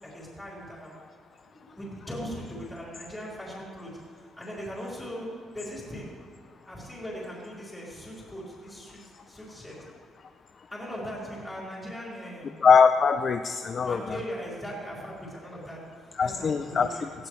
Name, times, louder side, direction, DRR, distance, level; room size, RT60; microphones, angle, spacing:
voice 1, 0.0-0.9 1.6-5.3 5.5-6.1 6.7-9.8 10.7-12.6 13.8-15.8 16.2-17.1, equal, 10° left, -5 dB, 4.1 m, -39 dB
voice 2, 12.6-14.0 16.2-16.9, left 5 dB, 35° left, 8 dB, 0.4 m, -21 dB
18.5 x 16.5 x 3.2 m, 2.1 s
cardioid pair, 165°, 0 cm